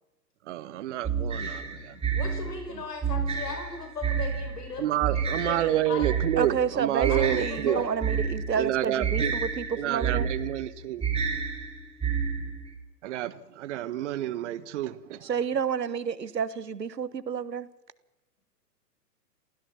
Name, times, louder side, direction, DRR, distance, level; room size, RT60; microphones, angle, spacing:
voice 1, 0.5-2.0 4.8-7.8 8.6-9.3 9.8-11.0 13.0-15.3, right 13 dB, 45° right, 1.4 m, -29 dB
sound 1, 1.0-12.7, right 6 dB, 10° right, 4.0 m, -30 dB
voice 2, 2.1-6.1 7.1-8.2, left 4 dB, 70° left, 5.6 m, -38 dB
voice 3, 6.4-10.3 15.2-17.7, right 7 dB, 80° right, 1.5 m, -30 dB
27.5 x 16.0 x 7.3 m
figure-of-eight pair, 115°, 49 cm